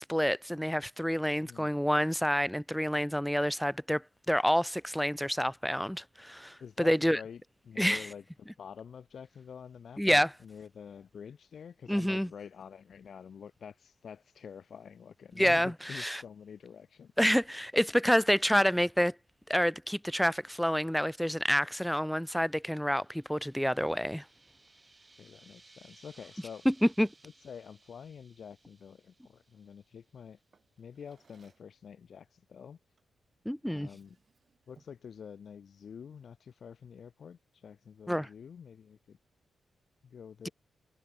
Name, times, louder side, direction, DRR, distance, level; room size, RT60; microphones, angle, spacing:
voice 1, 0.0-7.2 7.8-8.1 10.0-10.3 11.9-12.3 15.4-16.2 17.2-19.1 19.5-24.2 26.7-27.1 33.5-33.9 38.1-38.3, equal, ahead, 0.4 m, -28 dB
voice 2, 6.6-17.1 25.2-26.7 27.2-30.4 30.8-32.8 33.7-34.2 34.7-39.2 40.0-40.5, left 7 dB, 65° left, 2.9 m, -48 dB
sound 1, 22.2-30.4, right 3 dB, 25° right, 6.5 m, -62 dB
Drawer open or close, 30.5-31.8 33.0-33.2 33.6-35.1, right 5 dB, 45° right, 7.4 m, -67 dB
cardioid pair, 75°, 0 cm